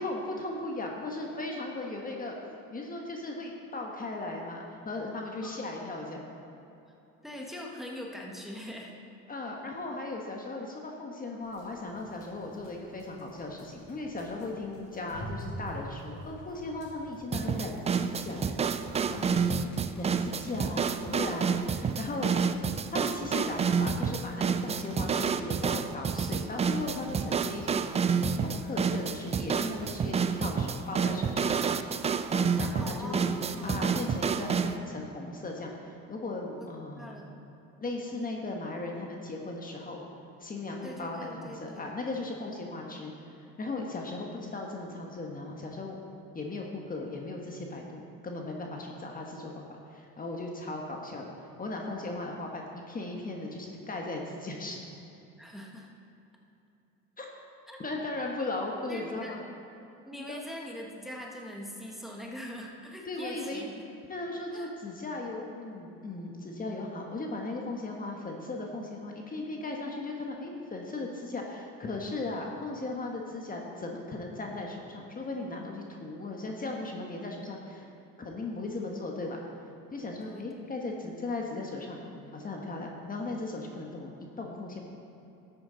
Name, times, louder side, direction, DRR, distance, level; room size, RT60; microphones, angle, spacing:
voice 1, 0.0-2.4 2.7-6.2 9.3-18.5 19.1-22.3 22.9-31.6 32.3-33.3 33.6-37.2 37.8-40.0 40.4-46.0 46.3-51.3 51.6-54.8 57.2-57.3 57.8-59.4 60.3-60.4 63.1-63.7 64.1-77.9 78.2-79.5 79.9-82.0 82.3-84.1 84.4-84.8, left 2 dB, 30° left, 0 dB, 1.3 m, -37 dB
voice 2, 1.2-1.6 5.4-5.5 7.2-8.9 19.9-20.6 32.6-33.7 36.5-36.7 37.0-37.4 40.8-41.9 55.4-55.9 57.7-57.8 58.9-59.4 60.0-63.8 64.5-64.7 80.2-80.6, equal, ahead, -1 dB, 1.4 m, -43 dB
sound 1, 11.4-27.1, equal, 55° left, 2.5 m, -49 dB
sound 2, 17.3-34.8, right 6 dB, 20° right, 0.4 m, -29 dB
12.0 x 8.8 x 4.0 m, 2.9 s
supercardioid pair, 95°, 30 cm